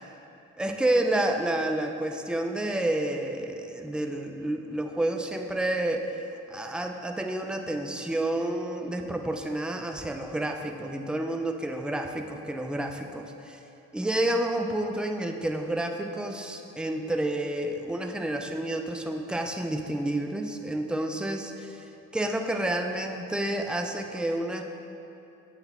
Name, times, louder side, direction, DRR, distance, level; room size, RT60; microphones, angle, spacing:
voice 1, 0.6-13.2 13.9-21.9 22.1-24.6, right 1 dB, 5° right, 4 dB, 0.4 m, -29 dB
7.8 x 4.1 x 4.2 m, 2.9 s
cardioid pair, 90°, 30 cm